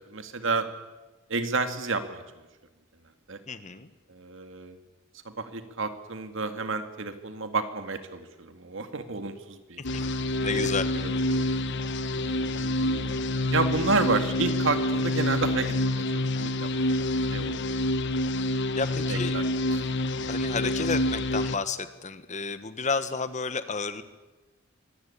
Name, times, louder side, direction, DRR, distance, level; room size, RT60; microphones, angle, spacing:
voice 1, 0.1-0.7 1.3-2.2 3.3-3.4 4.1-4.8 5.2-9.8 10.4-10.7 11.0-11.5 12.2-13.2 13.5-16.7 16.9-17.0 17.3-17.7 19.1-19.4 19.7-19.8 20.2-20.3, right 3 dB, 70° right, 8 dB, 2.2 m, -31 dB
voice 2, 3.5-3.9 9.9-10.0 10.4-10.9 18.8-19.4 20.3-24.0, left 4 dB, 35° left, 12 dB, 1.4 m, -31 dB
sound 1, 9.8-21.6, left 1 dB, 60° left, 1.0 m, -27 dB
24.0 x 19.0 x 8.6 m, 1.2 s
head